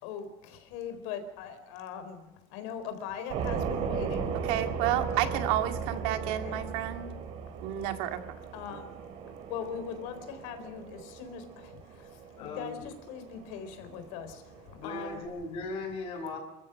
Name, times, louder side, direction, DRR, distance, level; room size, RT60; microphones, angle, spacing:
voice 1, 0.0-4.3 4.9-5.4 6.2-6.6 8.5-9.0 9.5-15.2 15.5-15.6, left 7 dB, 85° left, 9 dB, 4.2 m, -41 dB
sound 1, 3.3-15.3, right 6 dB, 55° right, 3.1 m, -37 dB
voice 2, 4.5-7.1 7.6-8.2, right 12 dB, 90° right, 6 dB, 2.1 m, -30 dB
voice 3, 12.4-12.9 14.7-16.4, left 2 dB, 55° left, 0 dB, 5.2 m, -38 dB
28.5 x 14.5 x 6.4 m, 1.0 s
cardioid pair, 165°, 12 cm